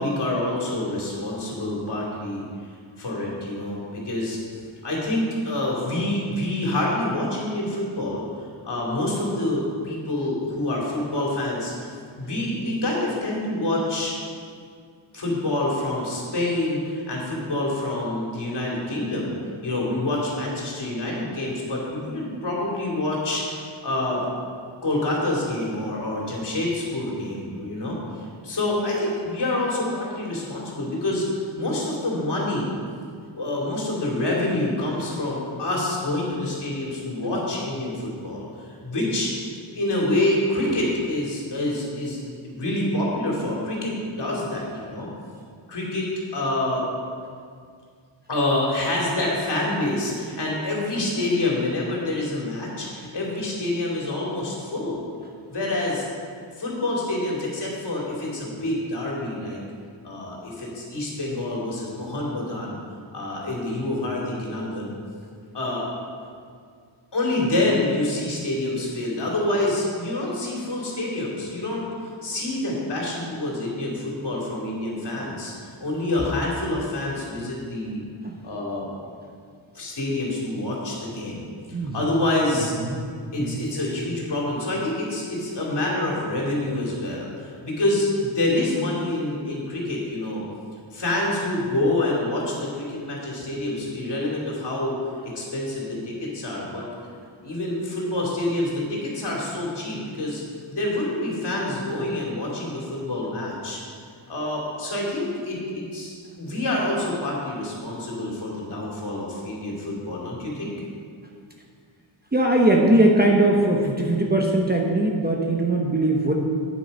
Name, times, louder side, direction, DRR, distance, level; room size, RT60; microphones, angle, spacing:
voice 1, 0.0-2.4 3.0-4.4 4.8-8.2 8.6-11.9 12.2-14.1 15.1-19.3 19.6-24.2 24.8-28.0 28.4-32.7 33.3-38.5 38.8-39.3 39.7-42.2 42.4-45.1 45.7-46.8 48.3-55.0 55.5-56.1 56.6-59.6 60.0-62.8 63.1-64.9 65.5-65.9 67.1-71.9 72.2-78.0 78.4-78.9 79.7-81.5 81.9-82.7 83.3-90.4 90.9-95.0 95.2-96.8 97.4-100.4 100.7-103.8 104.3-110.7, left 1 dB, 55° left, -4 dB, 2.7 m, -27 dB
voice 2, 81.7-82.1 82.5-83.0 83.4-83.6 112.3-116.3, right 1 dB, 20° right, 0 dB, 0.8 m, -20 dB
9.5 x 7.6 x 5.3 m, 2.1 s
wide cardioid pair, 135°, 49 cm